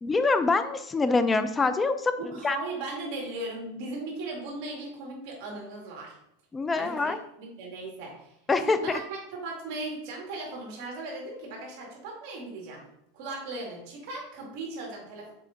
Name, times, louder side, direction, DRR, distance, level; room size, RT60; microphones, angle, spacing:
voice 1, 0.0-2.1 2.4-2.6 6.5-7.2 8.5-9.0, left 3 dB, 15° left, 11 dB, 0.4 m, -25 dB
voice 2, 2.2-6.2 6.7-7.1 7.4-8.4 8.6-12.8 13.1-15.3, right 2 dB, 55° right, -1 dB, 2.0 m, -37 dB
6.7 x 4.6 x 3.9 m, 0.79 s
supercardioid pair, 150°, 0 cm